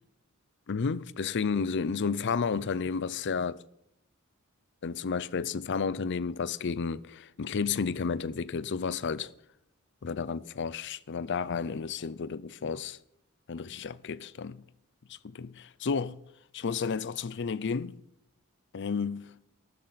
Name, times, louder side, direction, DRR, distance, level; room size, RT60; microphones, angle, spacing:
voice 1, 0.7-3.6 4.8-9.3 10.0-13.0 13.5-14.6 15.1-16.2 16.5-18.0 18.7-19.3, left 5 dB, 55° left, 0.5 m, -32 dB
14.0 x 12.5 x 4.1 m
head